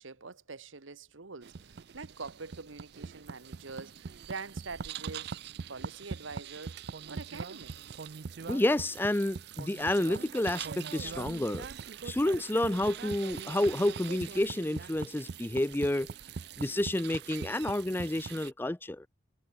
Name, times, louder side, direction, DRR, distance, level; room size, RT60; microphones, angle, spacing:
voice 1, 0.0-5.4 5.7-8.0, right 4 dB, 80° right, 1.3 m, -45 dB
sound 1, 1.4-18.5, right 6 dB, 55° right, 0.5 m, -42 dB
voice 2, 8.5-11.7 12.0-16.1 16.6-19.1, left 1 dB, 10° left, 0.4 m, -30 dB
head